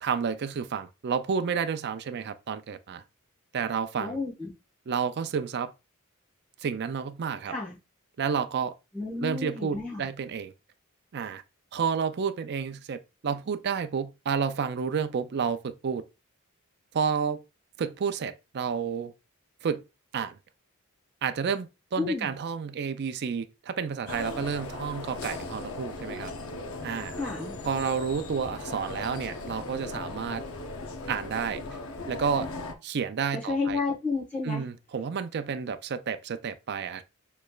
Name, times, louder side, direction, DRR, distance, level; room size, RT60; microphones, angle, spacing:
voice 1, 0.0-3.0 3.5-4.2 4.9-5.7 6.6-7.5 8.2-8.7 9.2-10.5 11.1-11.4 11.7-16.0 16.9-17.4 17.8-19.1 19.6-19.8 20.1-20.3 21.2-26.3 26.8-27.2 27.6-30.4 31.1-31.6 32.1-32.5 32.8-33.8 34.5-37.0, right 6 dB, 50° right, 0.4 m, -30 dB
voice 2, 4.0-4.5 7.5-7.8 8.9-10.1 22.0-22.3 27.2-27.6 33.3-34.7, left 3 dB, 5° left, 1.4 m, -31 dB
sound 1, 24.1-32.7, left 3 dB, 65° left, 0.7 m, -38 dB
6.5 x 3.1 x 2.4 m
head